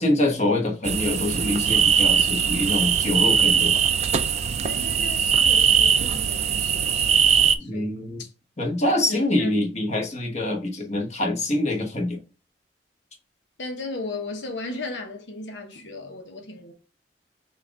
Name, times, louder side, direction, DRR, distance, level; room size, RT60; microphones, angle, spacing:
voice 1, 0.0-3.8 7.6-8.2 8.6-12.2, left 1 dB, 40° left, 1.1 m, -25 dB
sound 1, 0.8-7.5, right 7 dB, 40° right, 0.4 m, -21 dB
voice 2, 4.6-7.9 8.2-8.3 8.9-9.5 13.6-16.7, left 2 dB, 90° left, 0.9 m, -36 dB
5.7 x 2.4 x 3.5 m
head